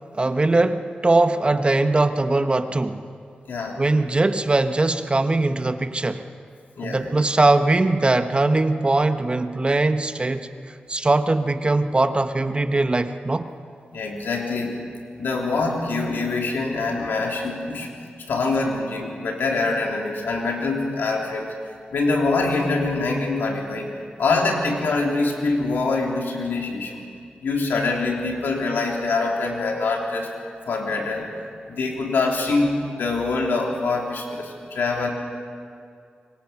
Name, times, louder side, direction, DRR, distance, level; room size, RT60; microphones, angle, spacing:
voice 1, 0.1-3.0 3.8-6.2 6.8-13.5, right 2 dB, 30° right, 1.2 m, -21 dB
voice 2, 3.5-3.8 6.8-7.1 13.9-14.7 15.2-17.9 18.2-21.5 21.9-23.9 24.2-27.0 27.4-30.3 30.7-31.3 31.7-35.1, left 3 dB, 85° left, 3.6 m, -24 dB
26.5 x 23.0 x 6.0 m
cardioid pair, 65°, 3 cm